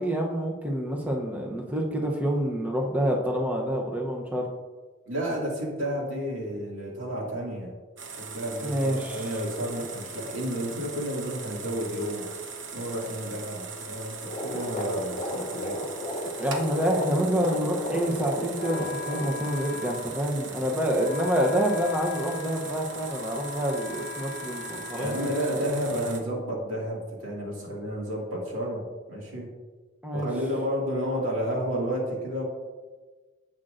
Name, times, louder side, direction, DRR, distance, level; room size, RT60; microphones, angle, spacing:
voice 1, 0.0-4.5 8.6-9.3 16.4-25.4 30.0-30.3, equal, 10° right, -1 dB, 0.7 m, -27 dB
voice 2, 5.1-7.7 8.2-12.2 12.7-15.8 24.9-29.5 30.1-32.4, equal, 85° right, -2 dB, 2.2 m, -31 dB
sound 1, 8.0-26.2, right 4 dB, 70° right, 1.0 m, -40 dB
sound 2, 14.2-19.3, left 1 dB, 35° left, 1.2 m, -34 dB
Wind instrument woodwind instrument, 18.6-26.3, left 7 dB, 55° left, 0.6 m, -41 dB
10.0 x 7.6 x 2.6 m, 1.3 s
head